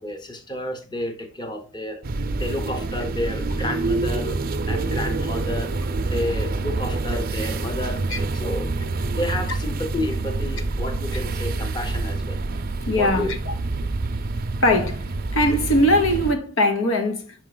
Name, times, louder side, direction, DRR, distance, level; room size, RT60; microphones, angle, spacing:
voice 1, 0.0-4.4 4.7-5.7 6.0-8.0 8.3-12.4 13.0-13.3, left 1 dB, 20° left, 0.8 m, -31 dB
sound 1, 2.0-16.3, right 3 dB, 45° right, 0.5 m, -27 dB
voice 2, 12.9-13.3 14.6-15.0 15.3-17.3, left 1 dB, 80° left, 1.0 m, -20 dB
5.5 x 4.5 x 3.9 m
head